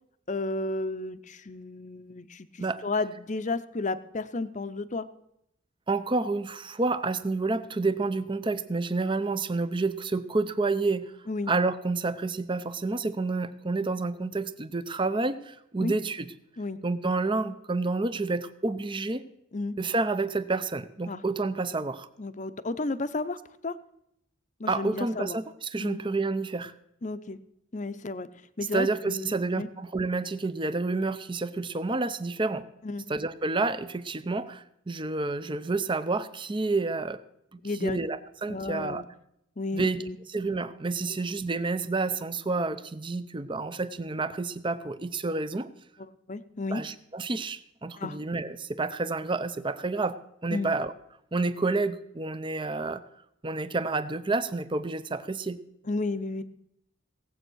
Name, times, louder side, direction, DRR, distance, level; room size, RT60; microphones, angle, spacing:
voice 1, 0.3-5.0 11.3-11.5 15.8-15.9 16.6-16.8 19.5-19.7 21.1-21.2 22.2-23.4 23.6-23.7 24.6-25.4 25.8-26.0 27.0-27.4 27.7-28.3 28.6-29.7 32.8-33.1 37.6-38.0 38.5-39.0 39.6-40.2 46.0-46.8 48.0-48.2 50.5-50.7 55.8-56.4, left 3 dB, 35° left, 12 dB, 0.7 m, -32 dB
voice 2, 5.9-11.1 11.5-16.3 16.8-19.2 19.8-22.1 24.7-26.7 28.7-32.7 33.1-37.2 37.5-39.0 39.7-40.0 40.3-45.7 46.7-50.2 50.4-50.9 51.3-53.0 53.4-55.6, right 3 dB, 25° right, 13 dB, 0.6 m, -29 dB
18.0 x 7.9 x 6.3 m, 0.78 s
head